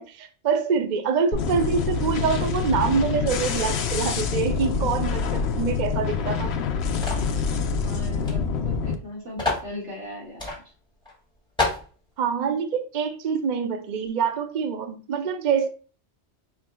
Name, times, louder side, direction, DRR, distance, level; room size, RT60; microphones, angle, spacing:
voice 1, 0.0-6.5 12.2-15.7, right 6 dB, 50° right, 0.6 m, -25 dB
sound 1, 1.3-8.9, left 5 dB, 70° left, 0.8 m, -26 dB
sound 2, 7.0-7.3 8.2-8.3 8.6-8.7 9.4-9.7 10.4-10.6 11.0-11.1 11.6-11.9, left 3 dB, 5° left, 2.0 m, -27 dB
voice 2, 7.8-10.7, left 1 dB, 85° right, 2.2 m, -38 dB
5.1 x 4.6 x 2.2 m
omnidirectional pair, 1.2 m